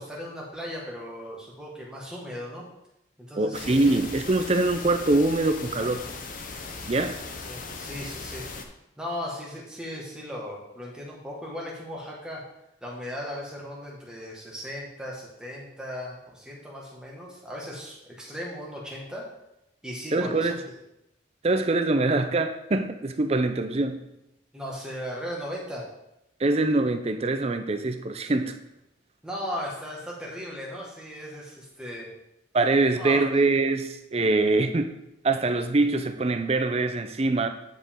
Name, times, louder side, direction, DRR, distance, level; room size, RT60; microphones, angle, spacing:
voice 1, 0.0-2.7 3.2-4.0 7.5-8.5 9.0-12.4 12.8-19.3 19.8-20.5 24.5-25.9 29.2-32.1 33.0-33.4, equal, 5° right, -4 dB, 1.7 m, -37 dB
voice 2, 3.4-6.0 6.9-7.2 20.1-20.6 21.4-24.0 26.4-28.6 32.5-34.9 35.2-37.5, right 2 dB, 35° right, 8 dB, 0.5 m, -24 dB
sound 1, 3.5-8.6, left 4 dB, 45° left, 0.7 m, -38 dB
9.4 x 5.1 x 3.7 m, 0.86 s
head